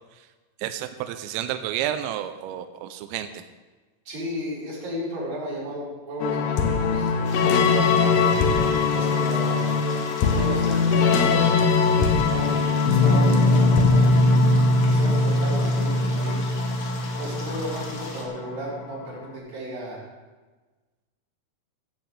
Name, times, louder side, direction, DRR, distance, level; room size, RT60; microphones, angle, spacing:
voice 1, 0.6-3.4, right 11 dB, 85° right, 9 dB, 2.6 m, -31 dB
voice 2, 4.1-7.1 8.0-8.4 8.9-9.8 10.3-11.4 12.1-14.3 14.8-16.4 17.2-20.1, equal, 45° right, -7 dB, 6.3 m, -34 dB
sound 1, 6.2-18.8, left 3 dB, 75° left, 2.1 m, -21 dB
sound 2, 7.2-18.2, left 2 dB, 45° left, 2.0 m, -40 dB
16.0 x 15.0 x 3.4 m, 1.3 s
omnidirectional pair, 5.8 m